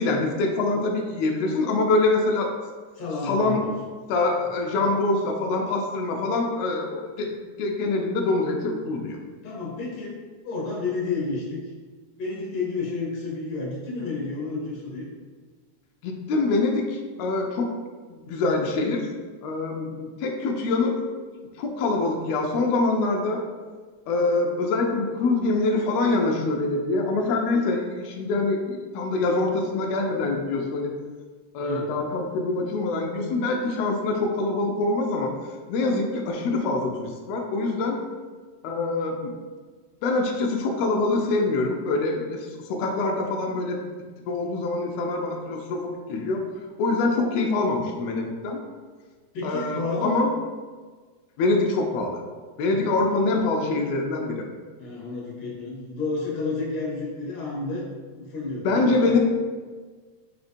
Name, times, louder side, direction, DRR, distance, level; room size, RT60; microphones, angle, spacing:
voice 1, 0.0-2.5 3.2-3.6 4.1-9.2 16.0-17.7 18.1-19.1 19.4-21.0 21.6-23.4 24.1-30.9 31.5-35.3 35.7-38.0 38.6-39.4 40.0-43.8 44.3-46.4 46.8-48.6 49.4-50.3 51.4-52.2 52.6-54.4 58.6-59.2, left 3 dB, 80° left, 1 dB, 1.5 m, -25 dB
voice 2, 2.9-3.7 9.4-10.2 10.4-11.6 12.2-15.1 31.6-31.9 49.3-50.3 52.7-53.0 54.8-59.1, left 3 dB, 65° left, -5 dB, 1.5 m, -31 dB
4.2 x 4.0 x 2.5 m, 1.5 s
omnidirectional pair, 3.4 m